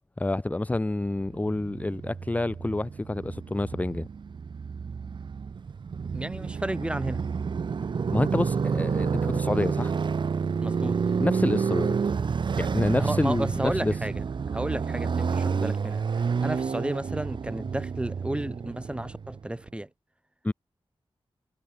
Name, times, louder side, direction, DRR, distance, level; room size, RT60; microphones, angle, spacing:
voice 1, 0.2-4.1 8.1-9.9 11.2-12.0 12.6-14.0 20.4-20.5, left 2 dB, 15° left, 0.7 m, -28 dB
Motorcycle, 1.3-19.5, right 6 dB, 55° right, 0.5 m, -29 dB
voice 2, 6.1-7.2 10.6-11.0 12.9-14.2 14.5-16.0 16.4-19.9, right 1 dB, 10° right, 1.9 m, -32 dB
wide cardioid pair, 120°, 10 cm